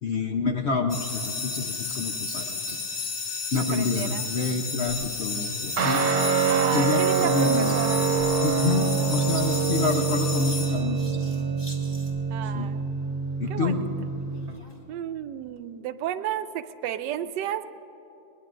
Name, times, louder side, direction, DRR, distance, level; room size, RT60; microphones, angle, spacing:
voice 1, 0.0-2.8 3.5-6.0 6.7-7.8 8.4-11.0 12.5-12.7 13.4-13.8, left 4 dB, 60° left, 3 dB, 0.7 m, -28 dB
sound 1, 0.9-11.3, left 5 dB, 40° left, 1.2 m, -33 dB
Scissors, 0.9-12.3 14.2-14.8 15.6-15.7, equal, 15° left, 1.5 m, -46 dB
voice 2, 3.7-4.3 6.5-8.1 8.6-9.1 12.3-12.9 13.5-13.9 14.9-17.8, right 11 dB, 85° right, 11 dB, 1.2 m, -33 dB
Guitar, 5.8-14.6, right 5 dB, 65° right, 1.3 m, -25 dB
21.0 x 21.0 x 2.5 m, 2.9 s
omnidirectional pair, 1.8 m